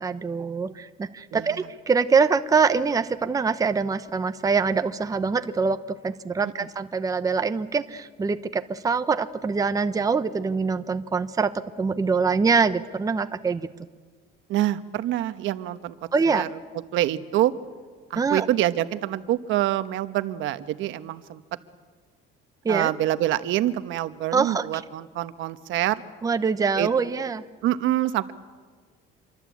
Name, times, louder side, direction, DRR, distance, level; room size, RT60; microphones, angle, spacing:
voice 1, 0.0-5.8 6.0-11.5 11.8-13.7 16.1-16.4 18.2-18.5 22.6-22.9 24.3-24.8 26.2-27.4, right 5 dB, 15° right, 10 dB, 0.8 m, -24 dB
voice 2, 14.5-15.9 16.3-16.5 16.9-17.5 18.1-21.4 22.7-26.0 26.8-26.9 27.6-28.3, right 13 dB, 70° right, 11 dB, 1.1 m, -26 dB
27.0 x 23.5 x 8.4 m, 1.5 s
cardioid pair, 145°, 21 cm